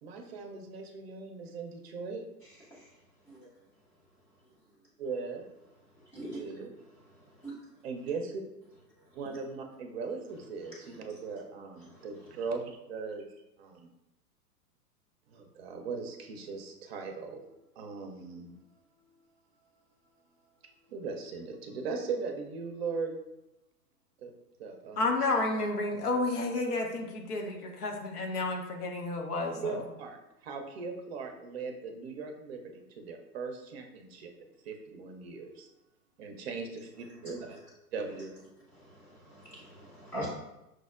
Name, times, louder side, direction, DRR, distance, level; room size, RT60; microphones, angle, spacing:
voice 1, 0.0-2.2 5.0-5.5 6.1-6.7 7.8-8.4 9.1-13.9 15.3-17.4 17.8-18.6 19.0-19.1 20.6-23.2 24.2-24.3 24.6-25.1 29.5-34.3 34.6-35.7 36.2-37.6 37.9-38.4 40.1-40.3, right 4 dB, 40° right, 4 dB, 0.6 m, -39 dB
voice 2, 5.9-6.7 7.1-7.5 11.8-12.0 37.2-37.6 38.7-40.3, right 1 dB, 5° left, -9 dB, 0.4 m, -43 dB
voice 3, 25.0-29.8, left 2 dB, 70° left, 2 dB, 0.8 m, -31 dB
6.0 x 2.0 x 2.4 m, 0.93 s
figure-of-eight pair, 110°, 48 cm